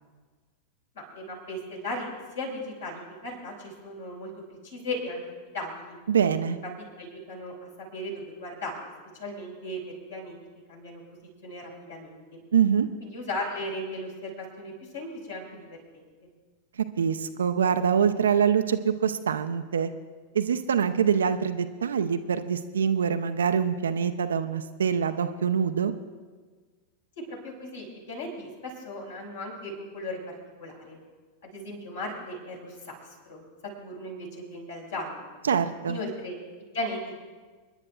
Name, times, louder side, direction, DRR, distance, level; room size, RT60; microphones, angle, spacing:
voice 1, 0.9-2.1 2.3-4.3 4.6-5.2 5.5-6.0 7.0-8.9 9.2-10.3 10.7-11.0 11.4-12.2 13.0-15.8 16.2-16.3 27.2-31.0 31.4-32.8 33.3-33.4 33.8-35.2 35.9-36.4 36.7-37.2, left 1 dB, 65° left, -1 dB, 4.8 m, -36 dB
voice 2, 6.1-6.6 12.5-12.9 17.0-19.9 20.3-25.9 35.4-36.0, right 7 dB, 65° right, 9 dB, 0.5 m, -24 dB
30.0 x 10.5 x 2.3 m, 1.4 s
figure-of-eight pair, 90°, 0 cm